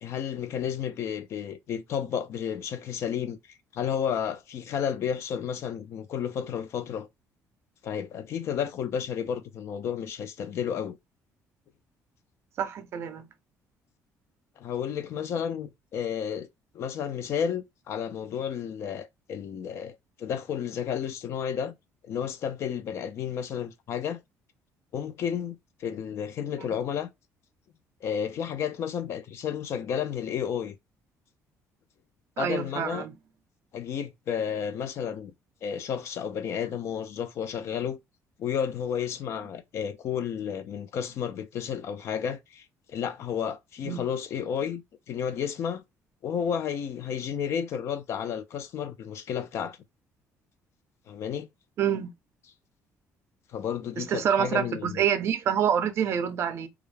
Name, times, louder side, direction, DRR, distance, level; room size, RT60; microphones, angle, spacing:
voice 1, 0.0-3.4 3.7-7.1 7.8-11.0 14.6-16.5 16.7-21.7 22.0-24.2 24.9-27.1 28.0-30.8 32.4-33.1 33.7-35.3 35.6-38.0 38.4-45.8 46.2-49.8 51.1-51.5 53.5-55.0, left 8 dB, 50° left, 0.3 m, -32 dB
voice 2, 12.6-13.2 32.4-33.1 43.8-44.0 51.8-52.1 54.0-56.7, right 8 dB, 45° right, 0.5 m, -27 dB
2.3 x 2.0 x 3.2 m
cardioid pair, 160°, 6 cm